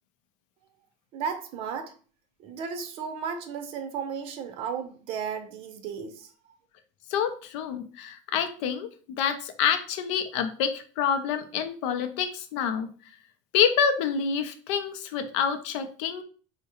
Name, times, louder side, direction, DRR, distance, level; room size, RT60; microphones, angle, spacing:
voice 1, 1.1-1.9 2.4-6.3, right 6 dB, 35° right, 0.4 m, -34 dB
voice 2, 7.1-8.9 9.2-12.9 13.5-16.2, left 7 dB, 65° left, 0.5 m, -27 dB
4.6 x 2.2 x 2.8 m
cardioid pair, 170°, 16 cm